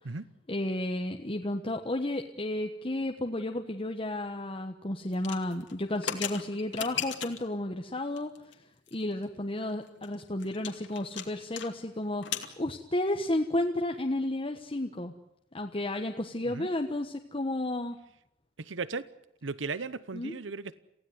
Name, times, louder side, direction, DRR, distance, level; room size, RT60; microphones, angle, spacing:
voice 1, 0.5-8.3 8.9-15.1 15.5-18.0 20.1-20.4, left 1 dB, 30° left, 3 dB, 1.3 m, -32 dB
sound 1, 5.1-7.5 8.2-8.5 8.9-9.0 9.2-9.3 9.7-11.7 12.0-12.5, left 8 dB, 70° left, 2.5 m, -37 dB
voice 2, 18.6-19.0 19.4-20.7, right 4 dB, 85° right, 16 dB, 0.9 m, -36 dB
28.0 x 16.5 x 9.5 m, 0.77 s
head